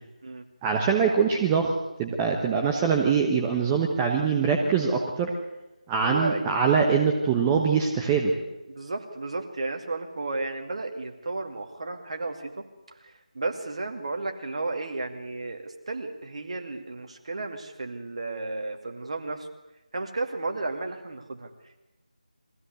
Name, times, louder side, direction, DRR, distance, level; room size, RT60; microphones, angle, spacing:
voice 1, 0.6-1.7 2.0-5.3 5.9-8.3, right 6 dB, 10° right, 2 dB, 1.1 m, -23 dB
voice 2, 6.0-6.5 8.5-12.6 13.3-19.5 19.9-21.5, right 2 dB, 45° right, 4 dB, 2.4 m, -33 dB
23.0 x 15.5 x 8.2 m, 1.0 s
figure-of-eight pair, 165°, 4 cm